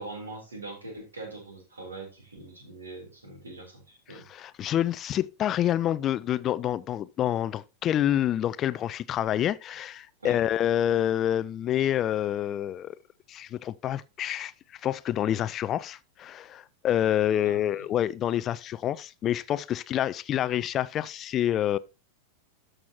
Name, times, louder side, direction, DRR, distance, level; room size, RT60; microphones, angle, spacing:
voice 1, 0.0-4.2 10.2-10.4 17.4-17.6, right 2 dB, 75° right, 3.6 m, -42 dB
voice 2, 4.1-12.9 13.3-21.8, left 11 dB, 30° left, 0.4 m, -27 dB
13.0 x 6.1 x 2.9 m
figure-of-eight pair, 90°, 0 cm